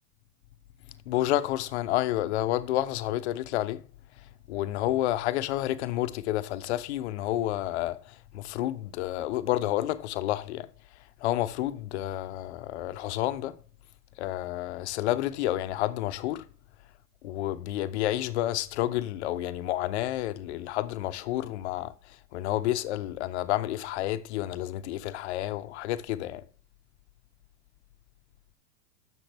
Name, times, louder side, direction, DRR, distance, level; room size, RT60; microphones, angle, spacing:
voice 1, 1.1-3.8 4.5-10.7 11.2-13.6 14.2-16.4 17.2-26.4, left 14 dB, 45° left, 0.8 m, -30 dB
10.5 x 7.1 x 3.4 m
supercardioid pair, 175°, 48 cm